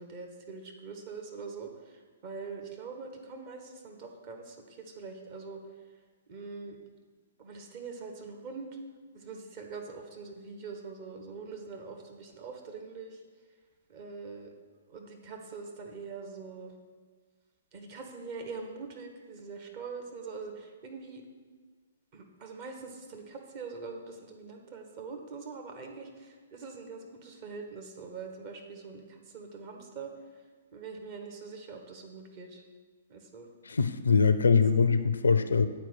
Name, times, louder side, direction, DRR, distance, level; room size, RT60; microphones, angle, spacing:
voice 1, 0.0-5.6 6.3-6.8 7.4-8.7 9.1-13.2 13.9-14.5 14.9-16.7 17.7-21.2 22.1-30.1 30.7-32.6 33.1-33.5 34.5-34.6, right 4 dB, 35° right, 2 dB, 1.1 m, -43 dB
voice 2, 33.7-35.7, left 5 dB, 65° left, 12 dB, 0.4 m, -23 dB
8.2 x 4.4 x 6.0 m, 1.5 s
figure-of-eight pair, 120°, 0 cm